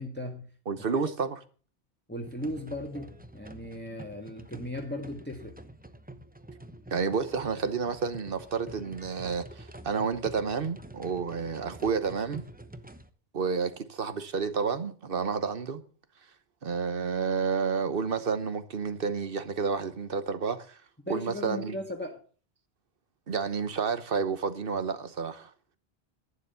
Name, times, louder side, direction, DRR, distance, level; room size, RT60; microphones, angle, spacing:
voice 1, 0.0-0.5 0.9-1.0 2.1-5.5 21.1-22.2, left 1 dB, 10° left, 1.6 m, -37 dB
voice 2, 0.7-1.4 6.9-12.4 13.3-15.8 16.6-20.8 21.1-21.8 23.3-25.5, right 5 dB, 60° right, 1.2 m, -30 dB
sound 1, 2.2-13.1, right 1 dB, 10° right, 0.8 m, -47 dB
11.5 x 9.6 x 6.8 m
omnidirectional pair, 1.1 m